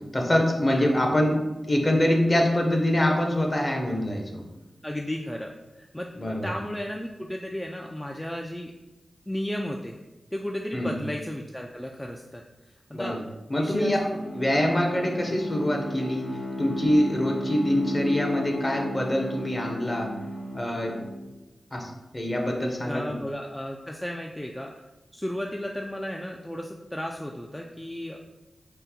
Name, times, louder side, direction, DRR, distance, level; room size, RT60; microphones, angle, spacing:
voice 1, 0.1-1.4 1.6-4.4 6.2-6.5 10.7-11.0 12.9-13.2 13.5-14.0 14.3-16.3 16.6-20.1 20.5-21.0 21.7-23.2, left 1 dB, 30° left, 2 dB, 0.7 m, -25 dB
voice 2, 4.8-6.1 6.4-8.7 9.3-10.0 10.3-12.4 12.9-13.2 13.5-14.2 22.8-24.7 25.1-28.2, left 1 dB, 10° left, 0 dB, 0.3 m, -34 dB
Bowed string instrument, 13.6-21.4, left 1 dB, 85° left, 0.9 m, -34 dB
3.8 x 2.1 x 4.1 m, 1.0 s
cardioid pair, 55°, 0 cm